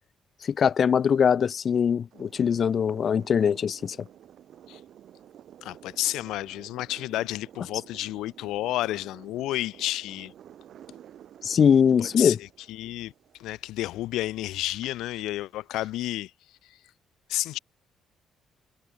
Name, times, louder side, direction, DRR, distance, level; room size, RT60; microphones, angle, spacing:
voice 1, 0.4-4.0 11.4-12.4, left 7 dB, 55° left, 0.6 m, -22 dB
sound 1, 2.1-15.9, right 10 dB, 65° right, 4.7 m, -51 dB
voice 2, 5.6-10.3 12.0-13.1 13.4-16.3 16.7-16.8 17.3-17.6, left 15 dB, 75° left, 2.7 m, -31 dB
hypercardioid pair, 50°, 0 cm